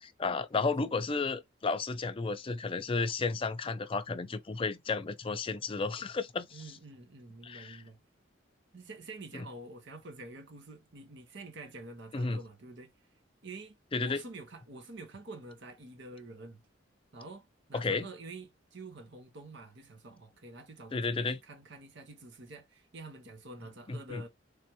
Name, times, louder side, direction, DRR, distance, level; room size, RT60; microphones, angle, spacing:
voice 1, 0.0-6.6 7.4-7.8 9.3-9.5 12.1-12.4 13.9-14.2 17.7-18.1 20.9-21.4 23.9-24.2, left 4 dB, 30° left, 0.5 m, -33 dB
voice 2, 6.5-8.0 8.7-12.9 13.4-16.6 17.1-24.3, right 2 dB, 65° right, 1.0 m, -47 dB
3.3 x 3.2 x 3.0 m
head